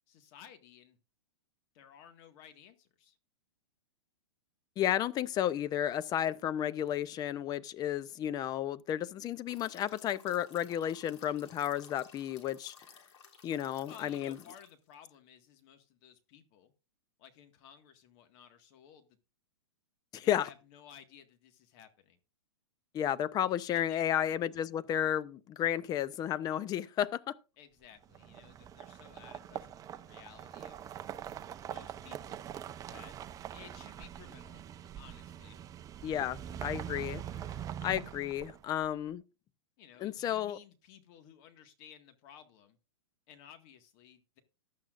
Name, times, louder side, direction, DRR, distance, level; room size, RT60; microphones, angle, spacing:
voice 1, 0.1-1.0 1.7-3.2 13.8-16.7 17.2-19.1 20.2-22.2 23.7-24.0 27.6-30.9 31.6-32.5 32.9-33.1 33.5-34.6 34.9-35.6 39.8-42.8 43.3-44.4, left 9 dB, 45° left, 1.8 m, -56 dB
voice 2, 4.8-12.7 13.4-14.4 20.1-20.5 22.9-27.3 36.0-37.2 37.8-39.2 40.0-40.6, left 10 dB, 25° left, 0.6 m, -32 dB
sound 1, 9.5-14.9, left 6 dB, 75° left, 3.1 m, -58 dB
sound 2, 28.0-38.9, right 10 dB, 25° right, 0.7 m, -44 dB
15.0 x 11.5 x 2.5 m
hypercardioid pair, 125°, 15 cm